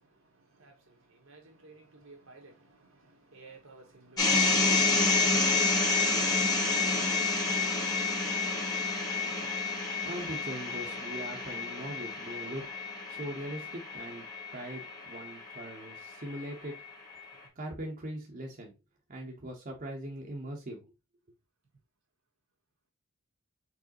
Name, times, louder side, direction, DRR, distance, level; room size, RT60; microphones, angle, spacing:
voice 1, 0.6-7.5 8.0-8.6 8.9-9.0, right 3 dB, 85° right, 1.5 m, -55 dB
sound 1, 4.2-16.3, left 3 dB, 20° left, 1.4 m, -29 dB
voice 2, 10.0-12.7 13.1-16.7 17.6-18.7 19.1-20.9, right 1 dB, 45° right, 0.9 m, -41 dB
4.8 x 3.6 x 2.8 m
head